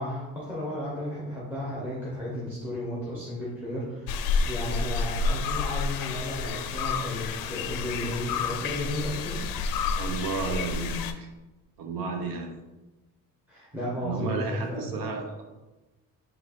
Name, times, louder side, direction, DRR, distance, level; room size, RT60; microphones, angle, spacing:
voice 1, 0.0-9.4 13.5-15.0, left 1 dB, 5° right, -7 dB, 1.1 m, -34 dB
sound 1, 4.1-11.1, left 4 dB, 70° left, 0.5 m, -29 dB
voice 2, 9.9-11.3 11.8-12.5 14.0-15.4, right 3 dB, 70° right, 3 dB, 0.9 m, -32 dB
4.3 x 2.6 x 4.1 m, 1.1 s
cardioid pair, 110°, 36 cm